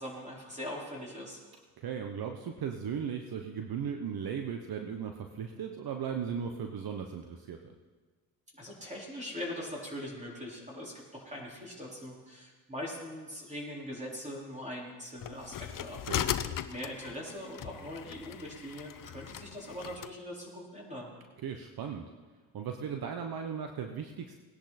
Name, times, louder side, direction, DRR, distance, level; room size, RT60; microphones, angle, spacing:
voice 1, 0.0-1.4 8.5-16.3 16.7-21.1, equal, 15° right, -4 dB, 4.5 m, -41 dB
voice 2, 1.8-7.6 16.1-16.2 21.4-22.0 22.5-24.3, right 7 dB, 60° right, 4 dB, 1.2 m, -37 dB
sound 1, 15.2-20.1, left 10 dB, 50° left, 0.7 m, -38 dB
18.5 x 10.5 x 4.3 m, 1.4 s
supercardioid pair, 65°, 41 cm